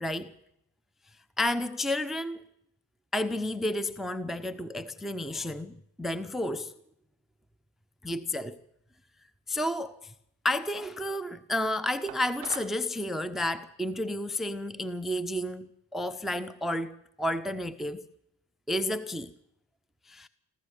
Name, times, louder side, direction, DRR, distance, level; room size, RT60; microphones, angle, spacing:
voice 1, 0.0-0.3 1.4-2.4 3.1-6.7 8.0-8.6 9.5-10.1 10.4-18.1 18.7-19.3 20.1-20.3, left 1 dB, ahead, 0.9 m, -31 dB
sound 1, 12.1-12.8, right 18 dB, 80° right, 0.7 m, -43 dB
26.5 x 13.5 x 8.2 m
supercardioid pair, 55°, 48 cm